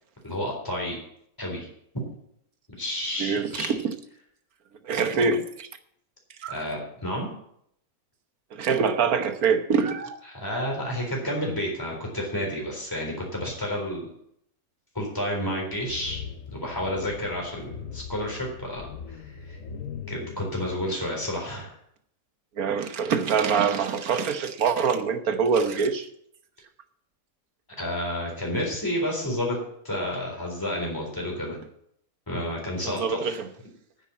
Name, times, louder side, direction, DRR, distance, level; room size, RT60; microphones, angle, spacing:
voice 1, 0.2-1.0 1.4-1.7 2.7-3.7 6.5-7.3 10.3-14.1 14.9-16.2 16.5-18.8 19.1-19.6 20.1-21.7 27.8-29.6 29.8-31.6 32.3-33.3, left 1 dB, 15° left, 4.0 m, -30 dB
voice 2, 3.2-3.9 4.8-5.7 6.4-6.6 8.5-10.2 22.6-26.1 32.8-33.5, right 5 dB, 85° right, 1.6 m, -25 dB
sound 1, 15.7-20.9, left 6 dB, 65° left, 1.2 m, -40 dB
9.8 x 8.3 x 8.5 m
omnidirectional pair, 1.5 m